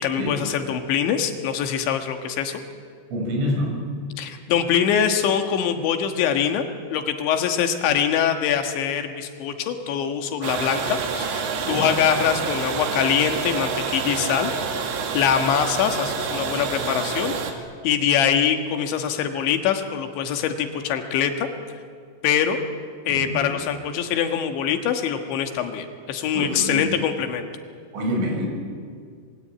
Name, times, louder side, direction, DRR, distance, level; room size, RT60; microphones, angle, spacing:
voice 1, 0.0-2.6 4.2-6.7 6.9-14.5 15.1-17.4 17.8-21.5 22.2-22.6 23.1-27.5, left 8 dB, 70° left, 6 dB, 3.7 m, -23 dB
voice 2, 3.1-3.8 11.7-11.9 23.1-23.5 26.3-27.0 27.9-28.5, equal, 85° right, 2 dB, 8.4 m, -26 dB
sound 1, 10.4-17.5, right 5 dB, 70° right, 4.4 m, -28 dB
27.0 x 23.0 x 8.8 m, 2.2 s
omnidirectional pair, 5.6 m